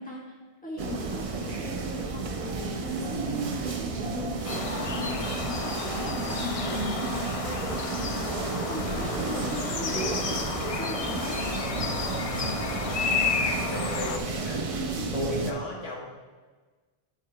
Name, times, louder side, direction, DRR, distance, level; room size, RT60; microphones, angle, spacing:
voice 1, 0.0-11.4 14.8-15.1, left 1 dB, 10° left, -4 dB, 1.5 m, -38 dB
sound 1, 0.8-15.5, right 4 dB, 45° right, 0.5 m, -32 dB
sound 2, 4.4-14.2, left 4 dB, 45° left, 0.5 m, -32 dB
voice 2, 12.9-14.6 15.1-16.1, left 2 dB, 85° left, -3 dB, 1.5 m, -36 dB
10.5 x 6.8 x 2.2 m, 1.4 s
omnidirectional pair, 1.0 m